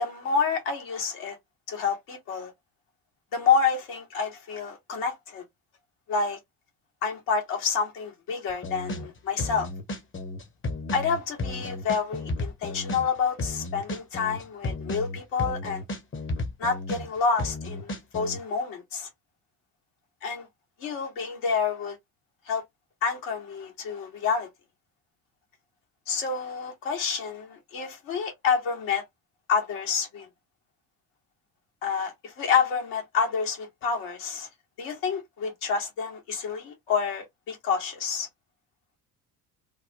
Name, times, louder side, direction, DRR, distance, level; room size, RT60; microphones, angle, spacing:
voice 1, 0.0-1.4 1.7-2.5 3.3-5.4 6.1-6.4 7.0-9.7 10.9-15.8 16.6-19.1 20.2-20.5 20.8-22.0 22.5-22.6 23.0-24.5 26.1-29.0 29.5-30.3 31.8-34.5 34.8-38.3, left 5 dB, 70° left, 1.7 m, -28 dB
sound 1, 8.5-9.1 9.4-13.1 13.4-17.1 17.4-18.4, left 2 dB, 25° left, 0.9 m, -33 dB
3.4 x 2.1 x 2.8 m
hypercardioid pair, 60°, 47 cm